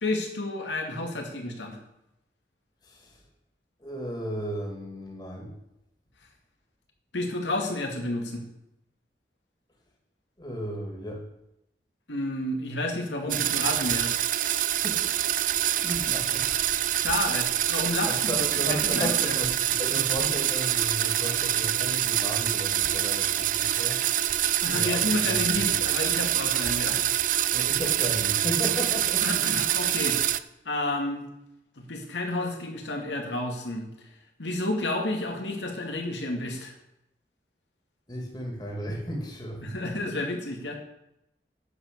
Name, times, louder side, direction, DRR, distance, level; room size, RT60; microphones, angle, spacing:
voice 1, 0.0-1.8 7.1-8.4 12.1-14.1 16.9-19.4 24.6-27.0 29.2-30.2 30.6-31.2 31.8-33.9 34.4-36.7 39.6-40.8, left 2 dB, 90° left, 2 dB, 2.3 m, -31 dB
voice 2, 3.8-5.5 10.4-11.2 14.8-15.3 15.8-16.5 18.1-24.0 24.7-25.7 27.5-29.4 38.1-39.7, equal, 25° left, 0 dB, 2.2 m, -34 dB
sound 1, 13.3-30.4, right 12 dB, 45° right, 0.4 m, -26 dB
9.8 x 7.3 x 6.8 m, 0.83 s
head